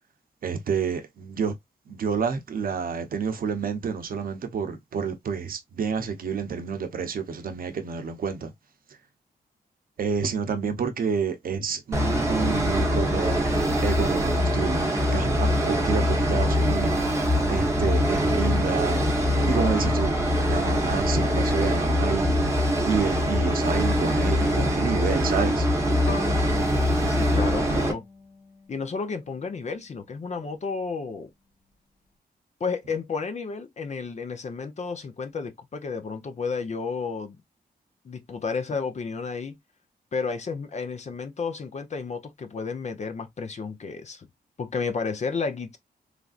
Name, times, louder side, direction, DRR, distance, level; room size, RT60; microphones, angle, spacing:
voice 1, 0.4-1.5 1.9-8.5 10.0-13.4 13.8-17.0 17.5-19.0 19.5-20.1 20.5-25.7, right 6 dB, 65° right, 0.7 m, -29 dB
sound 1, 11.9-27.9, equal, 15° right, 0.9 m, -23 dB
Bowed string instrument, 26.1-29.1, left 4 dB, 85° left, 1.1 m, -40 dB
voice 2, 27.1-28.0 28.7-31.3 32.6-37.4 38.0-39.5 40.1-44.3 44.6-45.8, left 5 dB, 45° left, 0.6 m, -32 dB
3.2 x 2.5 x 2.3 m
wide cardioid pair, 115°, 16 cm